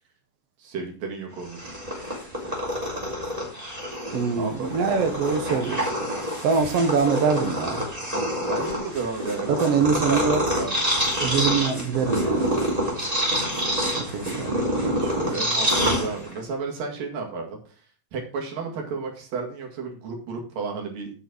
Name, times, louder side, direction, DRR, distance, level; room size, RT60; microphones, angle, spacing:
voice 1, 0.6-1.8 4.4-4.7 8.5-10.9 14.2-14.4 15.3-17.8 18.1-21.1, right 4 dB, 75° right, 1 dB, 3.7 m, -33 dB
Purr, 1.4-16.5, equal, 10° right, 3.3 m, -27 dB
voice 2, 4.1-5.9 6.4-7.8 9.5-10.4 11.2-12.6 14.0-15.4, right 5 dB, 60° right, 7 dB, 1.8 m, -24 dB
8.8 x 6.2 x 6.2 m, 0.39 s
omnidirectional pair, 4.0 m